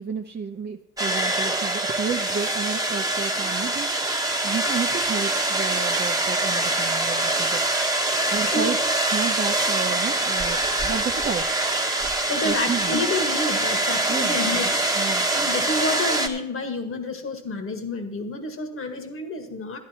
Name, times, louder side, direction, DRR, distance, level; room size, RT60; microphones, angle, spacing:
voice 1, 0.0-7.6 8.3-8.8 9.1-11.5 12.4-12.9 14.1-14.4 15.0-15.3, right 6 dB, 35° right, 2 dB, 0.8 m, -31 dB
sound 1, 1.0-16.3, right 2 dB, 10° right, 1.6 m, -24 dB
voice 2, 12.3-19.8, left 2 dB, 45° left, 6 dB, 1.9 m, -29 dB
12.5 x 10.5 x 4.4 m, 0.76 s
cardioid pair, 90°, 30 cm